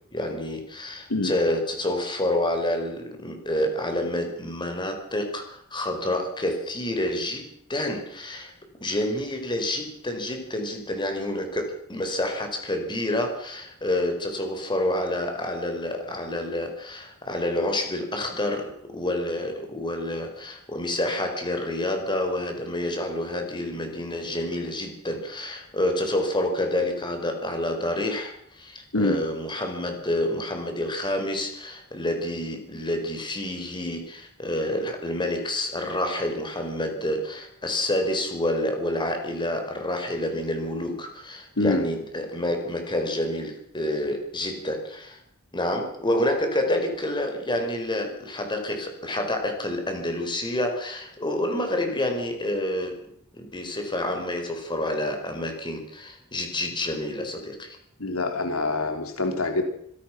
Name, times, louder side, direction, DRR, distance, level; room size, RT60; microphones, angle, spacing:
voice 1, 0.1-8.5 8.8-45.2 45.5-53.0 53.3-57.8, left 1 dB, 20° left, 5 dB, 4.8 m, -28 dB
voice 2, 41.6-41.9 58.0-59.6, left 2 dB, 80° left, 6 dB, 3.2 m, -25 dB
26.5 x 17.5 x 6.0 m, 0.69 s
head